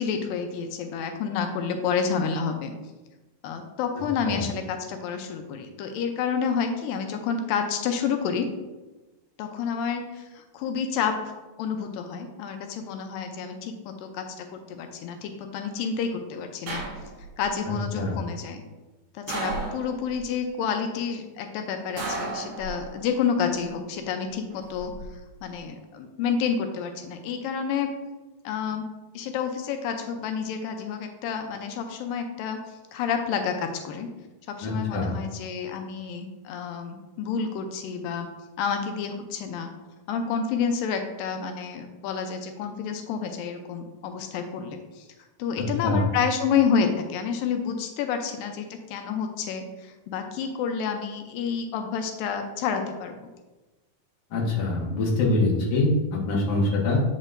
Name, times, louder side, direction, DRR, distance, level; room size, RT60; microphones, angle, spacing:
voice 1, 0.0-2.7 3.4-8.5 9.4-11.2 11.6-16.9 17.4-18.6 19.1-24.9 25.4-27.9 28.4-28.9 29.2-32.6 32.9-34.1 34.5-38.3 38.6-39.7 40.1-45.1 45.4-53.2, left 6 dB, 85° left, 5 dB, 2.3 m, -29 dB
sound 1, 16.7-17.4 19.3-20.2 22.0-23.1 24.5-25.0, right 2 dB, 55° right, 2.3 m, -33 dB
voice 2, 34.6-35.1 45.6-46.0 54.3-57.0, left 2 dB, 60° left, -2 dB, 1.9 m, -24 dB
8.2 x 5.4 x 2.5 m, 1.1 s
omnidirectional pair, 3.9 m